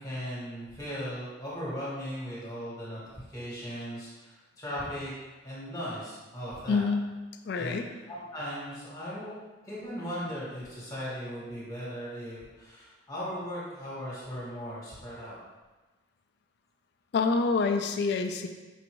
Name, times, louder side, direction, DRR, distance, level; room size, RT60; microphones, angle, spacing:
voice 1, 0.0-3.0 3.3-5.1 5.4-6.9 7.5-9.3 9.6-15.4, equal, 15° left, -9 dB, 1.4 m, -38 dB
voice 2, 6.7-7.1 7.5-7.9 17.1-18.5, left 4 dB, 55° left, 6 dB, 0.3 m, -27 dB
5.5 x 2.5 x 3.0 m, 1.2 s
head